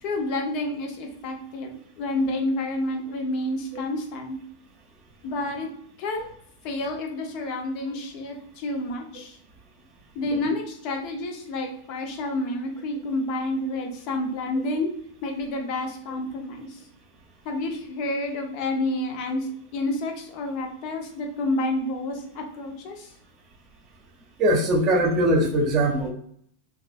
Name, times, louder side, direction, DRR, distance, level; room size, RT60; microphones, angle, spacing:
voice 1, 0.0-4.4 5.2-5.7 6.0-6.3 6.6-9.4 10.1-14.9 15.2-16.8 17.4-23.1, left 2 dB, 45° left, 3 dB, 0.6 m, -29 dB
voice 2, 24.4-26.1, right 1 dB, 30° right, 0 dB, 0.7 m, -21 dB
3.0 x 2.4 x 2.5 m, 0.65 s
figure-of-eight pair, 90°, 0 cm